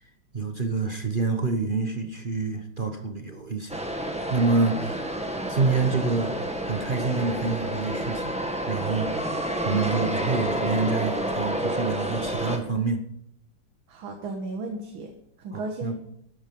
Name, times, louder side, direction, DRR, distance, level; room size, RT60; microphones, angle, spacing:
voice 1, 0.3-3.8 4.3-5.2 5.5-8.3 8.7-9.1 9.6-13.0 15.5-15.9, right 4 dB, 40° right, 6 dB, 0.8 m, -27 dB
sound 1, 3.7-12.6, right 1 dB, 5° right, 1.3 m, -29 dB
voice 2, 13.9-15.1 15.4-16.0, right 2 dB, 75° right, 3 dB, 2.2 m, -34 dB
13.5 x 10.5 x 5.3 m, 0.73 s
omnidirectional pair, 2.3 m